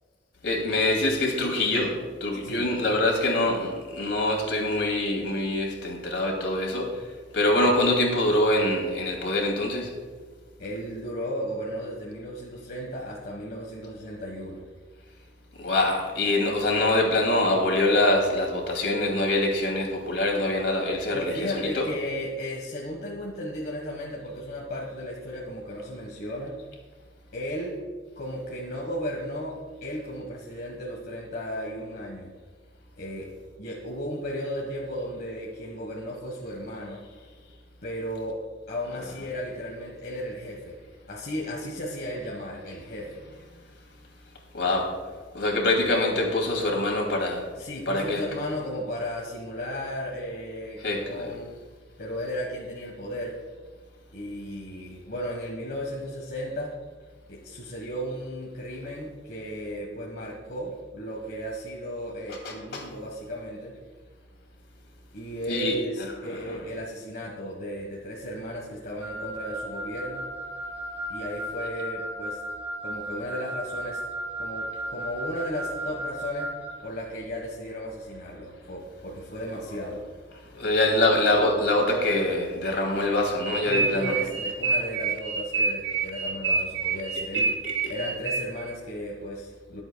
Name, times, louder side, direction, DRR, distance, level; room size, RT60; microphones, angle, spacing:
voice 1, 0.4-1.9 2.2-6.9 7.3-9.9 15.6-21.9 44.5-44.9 45.3-47.5 47.9-48.2 50.8-51.3 62.4-62.8 65.5-65.8 80.5-84.2, left 2 dB, 75° left, 0 dB, 2.7 m, -24 dB
voice 2, 10.6-14.7 21.1-26.6 27.3-27.8 28.2-32.3 33.0-33.3 33.6-37.0 37.8-38.4 38.7-40.8 41.1-43.2 47.6-51.5 52.0-53.4 54.1-56.7 57.3-63.7 65.1-70.3 71.1-72.4 72.8-74.0 74.4-76.6 76.8-80.0 83.7-87.5 87.9-89.8, equal, 55° left, -2 dB, 1.4 m, -35 dB
Wind instrument woodwind instrument, 69.0-76.8, right 1 dB, 10° right, 1.0 m, -35 dB
sound 1, 83.4-88.7, right 4 dB, 65° right, 0.7 m, -28 dB
22.5 x 7.8 x 2.3 m, 1.5 s
head